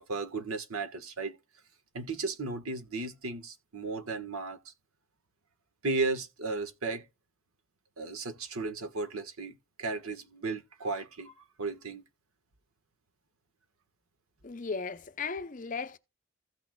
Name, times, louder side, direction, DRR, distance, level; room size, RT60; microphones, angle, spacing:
voice 1, 0.0-1.4 1.9-4.7 5.8-7.0 8.0-12.0, right 3 dB, 90° right, 1.4 m, -35 dB
voice 2, 14.4-16.0, left 5 dB, 35° left, 0.6 m, -36 dB
15.5 x 6.3 x 2.2 m
head